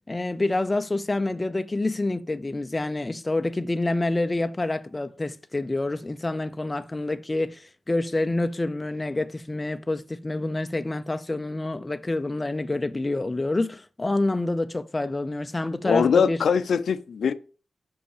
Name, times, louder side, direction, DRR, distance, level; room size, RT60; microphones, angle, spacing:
voice 1, 0.1-16.4, left 2 dB, 20° left, 0.5 m, -27 dB
voice 2, 15.8-17.3, left 6 dB, 85° left, 0.5 m, -22 dB
5.6 x 5.1 x 6.6 m
wide cardioid pair, 125°, 0 cm